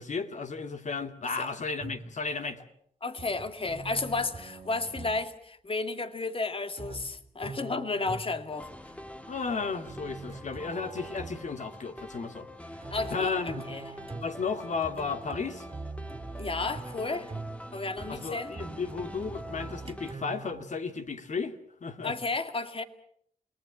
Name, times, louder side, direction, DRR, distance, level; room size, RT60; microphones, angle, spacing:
voice 1, 0.0-2.6 9.3-12.5 13.1-13.6 14.1-15.7 18.1-21.6 21.8-22.2, left 5 dB, 60° left, 2.3 m, -34 dB
sound 1, 1.8-2.3 3.2-5.2 6.8-8.5 9.9-11.5 12.8-20.6, right 3 dB, 40° right, 2.5 m, -43 dB
voice 2, 3.0-8.7 12.9-13.9 16.4-17.3 17.7-18.5 22.0-22.8, left 3 dB, 40° left, 2.1 m, -33 dB
sound 2, 8.5-20.1, equal, 10° left, 1.7 m, -45 dB
28.5 x 20.0 x 7.3 m
cardioid pair, 65°, 14 cm